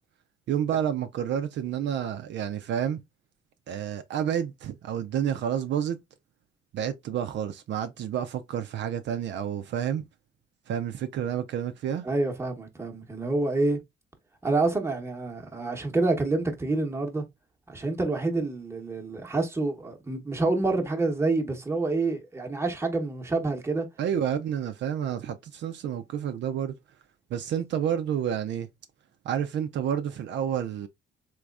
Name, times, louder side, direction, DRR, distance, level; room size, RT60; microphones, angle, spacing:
voice 1, 0.5-3.0 3.7-6.0 6.7-10.0 10.7-12.0 24.0-26.7 27.3-28.7 29.3-30.9, right 9 dB, 65° right, 0.5 m, -29 dB
voice 2, 12.0-13.8 14.4-17.2 17.7-23.9, right 3 dB, 15° right, 0.9 m, -27 dB
3.4 x 3.0 x 2.4 m
cardioid pair, 90°, 20 cm